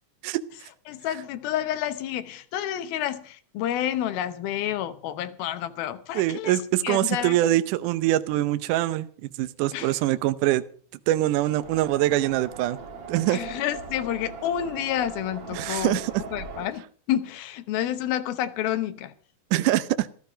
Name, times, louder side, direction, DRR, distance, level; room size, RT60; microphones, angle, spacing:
voice 1, 0.9-6.5 6.8-7.4 9.7-10.0 13.3-16.0 16.3-19.1, left 11 dB, 75° left, 2.6 m, -29 dB
voice 2, 6.2-10.6 11.1-12.8 13.1-13.4 15.5-16.2 19.5-20.1, right 15 dB, 85° right, 1.8 m, -24 dB
sound 1, 11.6-16.7, right 5 dB, 55° right, 3.6 m, -40 dB
15.0 x 13.0 x 5.1 m
omnidirectional pair, 4.7 m